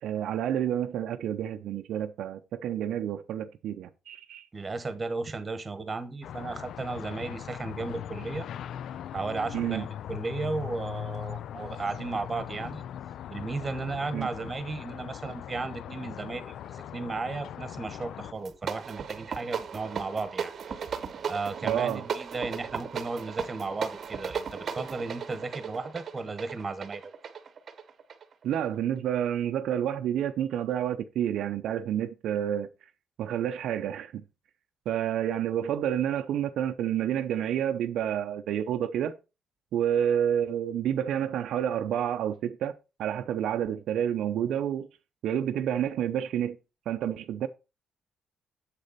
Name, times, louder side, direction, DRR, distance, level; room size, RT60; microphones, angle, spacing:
voice 1, 0.0-4.5 9.5-9.8 14.1-14.3 21.6-22.0 28.4-32.7 33.2-34.2 34.9-39.1 39.7-42.7 43.0-44.9 45.2-46.6 46.9-47.5, right 10 dB, 70° right, 0.6 m, -29 dB
voice 2, 4.5-8.5 9.1-12.8 13.3-20.5 21.3-27.1, right 3 dB, 20° right, 1.2 m, -35 dB
sound 1, 6.2-18.3, left 10 dB, 65° left, 0.3 m, -40 dB
sound 2, 18.3-28.7, right 6 dB, 45° right, 0.9 m, -36 dB
7.6 x 6.6 x 4.1 m
cardioid pair, 135°, 0 cm